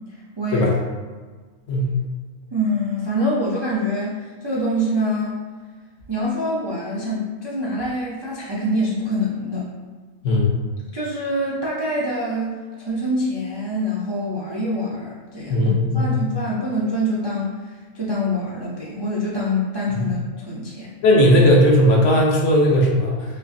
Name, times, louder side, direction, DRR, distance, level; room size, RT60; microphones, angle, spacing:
voice 1, 0.1-0.7 2.5-5.4 6.1-9.7 10.9-12.5 12.8-17.5 17.9-20.9, equal, 40° right, -6 dB, 0.3 m, -25 dB
voice 2, 10.2-10.5 15.5-16.3 21.0-23.2, left 1 dB, 70° left, -2 dB, 1.1 m, -17 dB
5.3 x 2.4 x 2.7 m, 1.4 s
omnidirectional pair, 1.4 m